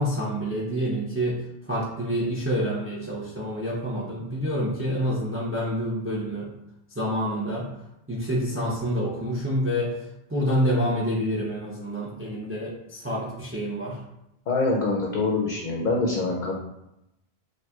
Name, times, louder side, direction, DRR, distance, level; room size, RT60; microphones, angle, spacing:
voice 1, 0.0-1.4 1.7-6.5 6.9-7.7 8.1-10.0 10.3-14.0, equal, 20° right, -4 dB, 0.4 m, -27 dB
voice 2, 14.5-16.6, left 3 dB, 60° left, -1 dB, 0.6 m, -25 dB
4.1 x 2.5 x 2.3 m, 0.86 s
omnidirectional pair, 1.0 m